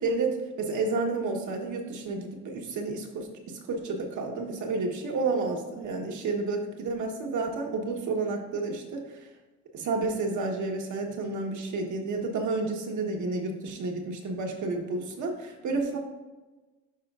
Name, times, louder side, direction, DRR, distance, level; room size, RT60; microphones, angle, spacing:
voice 1, 0.0-9.0 9.7-16.0, right 3 dB, 75° right, 2 dB, 1.3 m, -30 dB
11.5 x 4.5 x 2.5 m, 1.2 s
cardioid pair, 90°, 30 cm